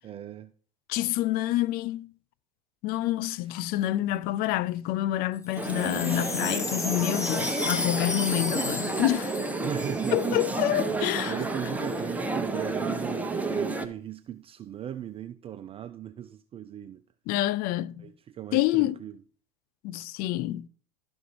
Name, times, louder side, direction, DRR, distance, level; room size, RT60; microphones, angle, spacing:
voice 1, 0.0-0.5 6.2-6.3 9.6-10.2 11.3-17.0 18.0-19.1, right 10 dB, 30° right, 0.5 m, -37 dB
voice 2, 0.9-2.1 2.8-9.4 10.1-11.4 17.3-18.1 18.5-19.0 19.8-20.7, left 15 dB, 50° left, 0.6 m, -27 dB
Wind chime, 5.4-10.6 10.8-10.9 11.1-11.6, left 3 dB, 15° left, 1.0 m, -34 dB
sound 1, 5.6-13.9, right 3 dB, 5° right, 1.0 m, -31 dB
12.5 x 5.3 x 4.7 m
hypercardioid pair, 90°, 20 cm